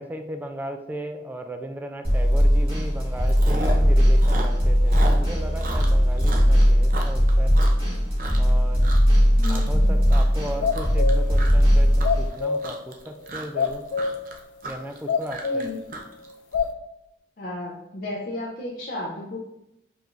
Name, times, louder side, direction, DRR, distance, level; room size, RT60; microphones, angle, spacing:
voice 1, 0.0-7.6 8.4-8.8 9.5-13.8 14.7-15.7, right 1 dB, 10° right, 5 dB, 0.3 m, -36 dB
sound 1, 2.0-12.3, equal, 30° right, 1.5 m, -19 dB
Chewing mastication, 2.4-2.6 2.9-3.9 4.1-8.5 8.8-9.2 9.4-9.8 10.1-16.6, right 2 dB, 45° right, 0.6 m, -35 dB
voice 2, 9.4-10.3 15.4-15.8 17.4-19.4, left 1 dB, 50° left, -3 dB, 0.6 m, -34 dB
sound 2, 9.8-9.9 10.4-11.3 11.8-12.7 13.2-13.3 13.5-14.2 14.7-14.8 15.1-15.8 16.2-16.7, left 5 dB, 85° left, 0.4 m, -26 dB
4.7 x 3.7 x 2.5 m, 0.85 s
head